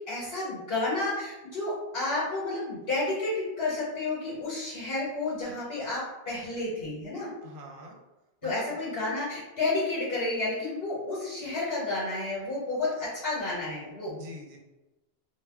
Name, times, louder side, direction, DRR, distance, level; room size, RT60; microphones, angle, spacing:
voice 1, 0.1-7.3 8.4-14.2, left 2 dB, 70° left, -7 dB, 1.0 m, -31 dB
voice 2, 7.4-8.0 8.4-8.7 14.1-14.6, equal, 60° right, 1 dB, 0.7 m, -44 dB
2.2 x 2.0 x 3.3 m, 1.0 s
omnidirectional pair, 1.1 m